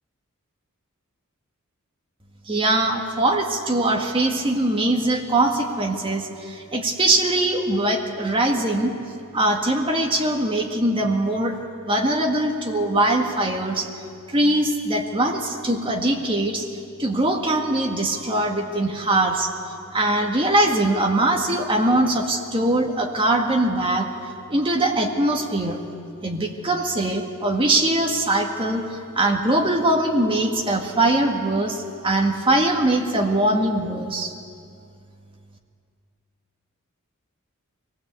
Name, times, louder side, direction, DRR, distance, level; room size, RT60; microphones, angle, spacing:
voice 1, 2.5-8.9 9.3-11.6 11.8-13.9 14.3-16.7 17.0-19.5 19.9-24.1 24.5-25.8 26.2-28.8 29.1-34.3, right 1 dB, 25° right, 1 dB, 1.8 m, -22 dB
23.0 x 16.5 x 8.3 m, 2.4 s
head